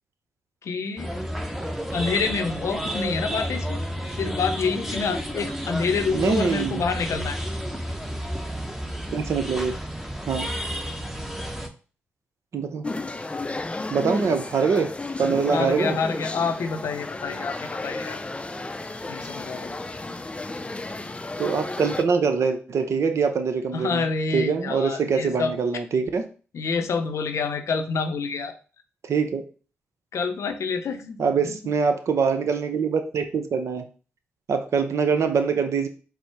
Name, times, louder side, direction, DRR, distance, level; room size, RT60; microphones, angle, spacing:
voice 1, 0.6-1.1 1.9-3.8 4.2-7.4 15.5-17.6 17.8-18.2 19.1-19.8 23.7-25.5 26.5-28.6 30.1-31.2 31.4-31.5, left 5 dB, 70° left, 7 dB, 0.6 m, -27 dB
sound 1, 1.0-11.7, equal, 5° right, 0.8 m, -31 dB
voice 2, 6.1-6.8 9.1-9.7 10.3-10.5 12.5-12.9 13.9-14.9 15.2-16.0 21.4-24.1 24.3-26.2 29.0-29.4 31.2-33.8 34.5-35.9, right 5 dB, 65° right, 7 dB, 0.6 m, -24 dB
sound 2, 12.8-22.0, left 2 dB, 20° left, 0.4 m, -33 dB
4.3 x 2.0 x 4.5 m, 0.37 s
supercardioid pair, 40°, 5 cm